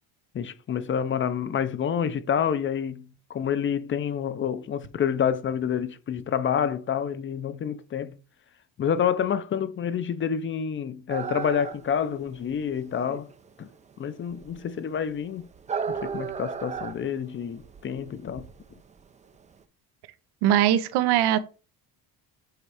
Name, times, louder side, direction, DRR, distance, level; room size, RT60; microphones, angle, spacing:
voice 1, 0.3-8.2 8.8-13.3 13.6-13.7 14.0-15.5 15.9-18.5, left 8 dB, 30° left, 0.6 m, -28 dB
sound 1, 11.1-19.6, right 6 dB, 20° right, 0.4 m, -36 dB
voice 2, 20.4-21.4, right 11 dB, 85° right, 0.8 m, -21 dB
7.7 x 3.2 x 4.8 m
cardioid pair, 145°, 39 cm